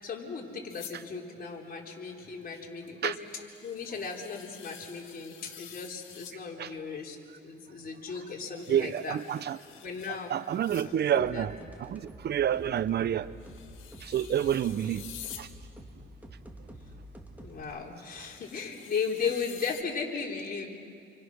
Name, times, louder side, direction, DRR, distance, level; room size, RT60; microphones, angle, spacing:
voice 1, 0.0-7.2 7.4-9.2 9.8-10.4 10.8-11.5 17.4-20.7, left 5 dB, 45° left, -1 dB, 4.0 m, -36 dB
sound 1, 0.7-1.0 2.9-3.0 3.2-6.4 8.3-10.9 11.8-11.9 13.4-15.5 17.6-17.7 18.0-19.8, left 10 dB, 85° left, 1.9 m, -49 dB
voice 2, 8.7-9.6 10.3-11.5 11.8-13.3 14.0-15.0 15.4-15.5, right 10 dB, 55° right, 16 dB, 0.7 m, -28 dB
sound 2, 11.1-17.6, equal, 10° right, 3.2 m, -48 dB
28.5 x 24.5 x 6.4 m, 2.4 s
cardioid pair, 90°, 20 cm